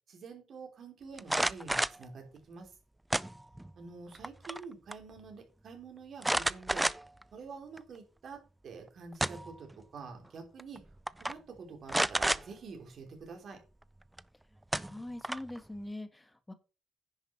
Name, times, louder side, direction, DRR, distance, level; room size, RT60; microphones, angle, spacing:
voice 1, 0.1-2.8 3.8-6.9 7.3-10.8 11.2-13.6, right 4 dB, 55° right, 4 dB, 3.5 m, -47 dB
sound 1, 1.2-2.0 3.1-3.7 4.1-4.6 4.9-5.0 6.2-7.2 7.8-7.9 8.9-9.6 10.6-10.8 11.1-11.3 11.9-12.4 14.2-14.3 14.7-15.6, right 1 dB, 10° right, 0.4 m, -30 dB
voice 2, 14.8-16.5, left 1 dB, 15° left, 10 dB, 1.5 m, -43 dB
10.0 x 5.6 x 5.7 m, 0.34 s
cardioid pair, 90°, 0 cm